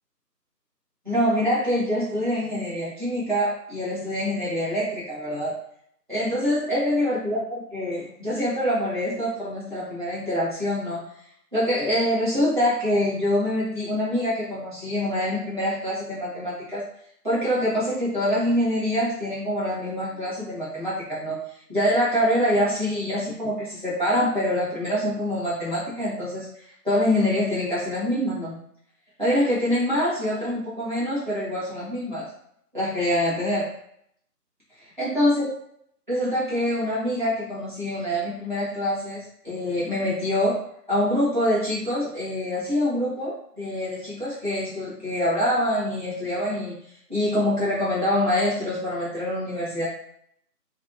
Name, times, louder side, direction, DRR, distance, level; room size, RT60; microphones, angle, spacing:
voice 1, 1.0-5.6 6.1-11.0 11.5-16.8 17.2-21.4 21.7-26.5 26.8-28.6 29.2-32.3 32.7-33.7 35.0-35.5 36.1-40.6 40.9-46.8 47.1-49.8, left 1 dB, 30° right, -11 dB, 0.9 m, -25 dB
2.6 x 2.2 x 2.6 m, 0.70 s
figure-of-eight pair, 165°, 49 cm